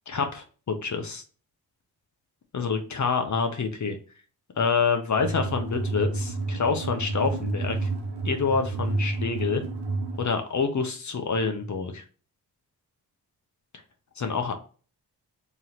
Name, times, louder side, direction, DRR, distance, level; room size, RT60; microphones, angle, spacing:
voice 1, 0.1-0.4 0.8-1.2 2.5-4.0 4.6-7.9 8.2-9.6 10.2-12.0 14.2-14.5, left 5 dB, 45° left, 5 dB, 0.8 m, -27 dB
sound 1, 5.2-10.2, right 2 dB, 80° right, 1.1 m, -30 dB
3.1 x 2.8 x 3.9 m, 0.37 s
cardioid pair, 50°, 40 cm